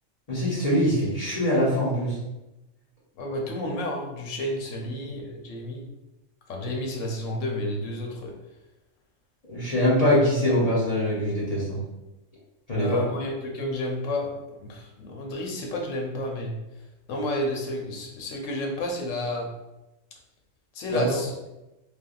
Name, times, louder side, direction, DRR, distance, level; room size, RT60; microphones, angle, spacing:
voice 1, 0.3-2.1 9.5-11.8 12.7-12.9 20.9-21.0, equal, 35° left, -8 dB, 0.9 m, -23 dB
voice 2, 3.2-5.9 6.5-8.3 12.8-14.3 14.6-16.6 17.1-19.5 20.7-21.3, left 1 dB, 80° left, 1 dB, 1.0 m, -31 dB
3.3 x 2.2 x 2.4 m, 0.98 s
omnidirectional pair, 1.3 m